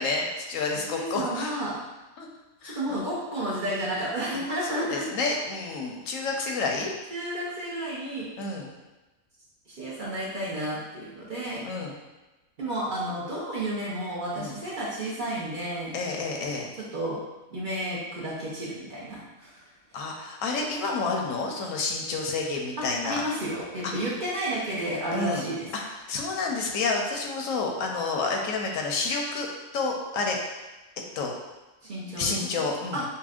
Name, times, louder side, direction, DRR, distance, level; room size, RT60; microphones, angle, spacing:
voice 1, 0.0-1.6 2.2-2.3 2.6-3.0 4.3-4.4 4.7-6.9 8.4-8.7 11.6-11.9 14.4-14.5 15.9-16.7 19.9-23.2 25.1-25.4 26.1-29.5 29.7-30.4 31.2-31.3 32.2-33.0, left 3 dB, 80° left, 1 dB, 1.0 m, -29 dB
voice 2, 0.9-1.8 2.6-5.0 7.1-8.3 9.7-11.6 12.6-15.9 16.9-17.2 17.5-19.6 22.8-25.7 31.8-32.6 32.9-33.0, right 1 dB, 45° right, -7 dB, 0.7 m, -32 dB
5.5 x 2.2 x 2.4 m, 1.1 s
omnidirectional pair, 1.4 m